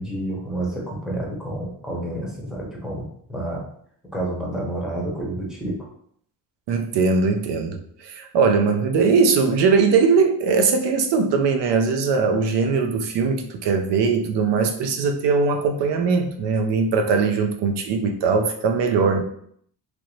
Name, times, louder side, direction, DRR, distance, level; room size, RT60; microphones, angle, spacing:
voice 1, 0.0-3.6 4.1-5.8, right 1 dB, ahead, -3 dB, 0.7 m, -29 dB
voice 2, 6.7-19.2, right 5 dB, 85° right, 5 dB, 0.7 m, -20 dB
3.1 x 2.6 x 3.1 m, 0.65 s
cardioid pair, 150°, 41 cm